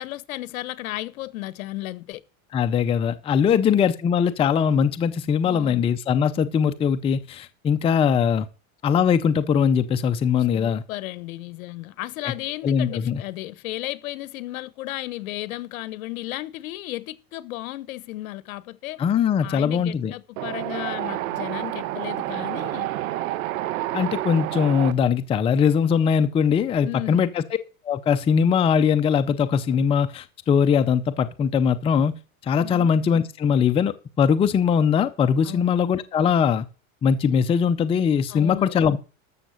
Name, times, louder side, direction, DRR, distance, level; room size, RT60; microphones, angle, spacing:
voice 1, 0.0-2.2 5.4-5.8 10.5-19.0 19.4-22.9 26.8-27.3 32.6-32.9 35.4-35.7 38.3-38.8, left 17 dB, 75° left, 1.2 m, -34 dB
voice 2, 2.5-8.5 8.8-10.8 12.6-13.2 19.0-20.1 23.9-27.4 27.8-36.7 37.0-39.0, left 7 dB, 15° left, 0.5 m, -21 dB
Wind, 20.4-24.9, right 15 dB, 70° right, 1.3 m, -29 dB
13.5 x 6.6 x 6.4 m
supercardioid pair, 145°, 42 cm